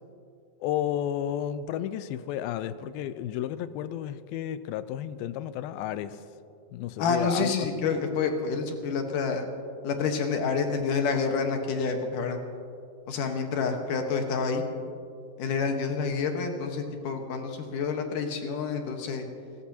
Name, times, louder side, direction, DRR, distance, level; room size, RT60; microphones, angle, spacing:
voice 1, 0.6-6.2 6.7-7.7, left 11 dB, 90° left, 13 dB, 2.5 m, -32 dB
voice 2, 7.0-9.5 9.8-12.4 13.1-14.6 15.4-19.3, left 5 dB, 70° left, 4 dB, 2.8 m, -28 dB
30.0 x 14.5 x 2.9 m, 2.5 s
omnidirectional pair, 4.1 m